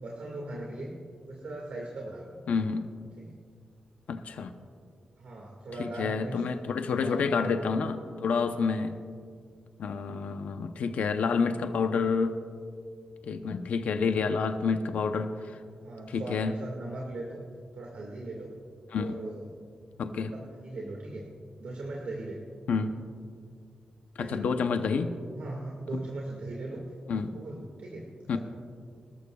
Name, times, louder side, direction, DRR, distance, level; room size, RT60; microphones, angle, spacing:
voice 1, 0.0-0.9 1.3-2.3 3.2-3.4 5.2-6.4 7.0-7.7 8.6-8.9 14.0-14.2 15.8-17.4 17.7-18.5 19.0-19.5 20.3-21.2 21.6-22.4 24.2-24.8 25.3-26.8 27.1-28.4, right 2 dB, 70° right, -2 dB, 1.9 m, -39 dB
voice 2, 2.5-2.9 4.1-4.5 5.8-9.0 9.8-12.4 13.2-15.4 16.1-16.6 18.9-19.1 20.0-20.3 22.7-23.0 24.2-25.2 27.1-27.3 28.3-28.4, left 5 dB, 85° left, 7 dB, 0.7 m, -28 dB
24.5 x 13.5 x 2.4 m, 2.2 s
wide cardioid pair, 135°, 2 cm